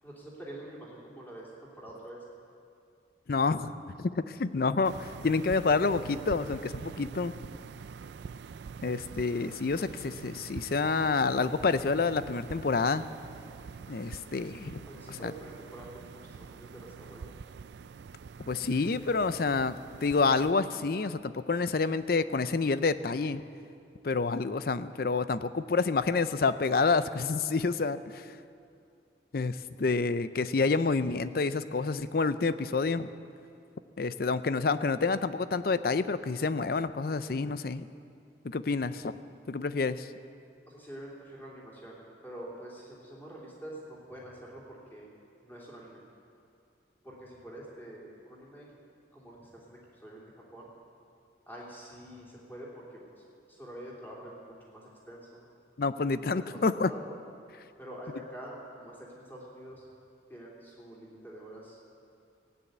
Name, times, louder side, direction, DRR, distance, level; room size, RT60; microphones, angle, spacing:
voice 1, 0.0-2.2 14.9-17.3 40.7-42.0 42.2-45.1 45.4-46.0 47.0-48.7 49.1-50.7 51.5-55.4 56.0-57.1 57.8-59.8 60.3-61.8, right 1 dB, 10° left, -4 dB, 3.1 m, -46 dB
voice 2, 3.3-3.7 4.0-7.3 8.8-13.0 13.9-14.8 15.2-15.3 18.5-19.7 20.0-23.4 24.0-28.3 29.3-33.1 34.0-37.9 38.4-39.2 39.5-40.1 55.8-56.9, left 4 dB, 55° left, 13 dB, 0.5 m, -28 dB
sound 1, 4.8-20.5, right 5 dB, 65° right, 0.3 m, -45 dB
16.0 x 9.7 x 8.1 m, 2.4 s
head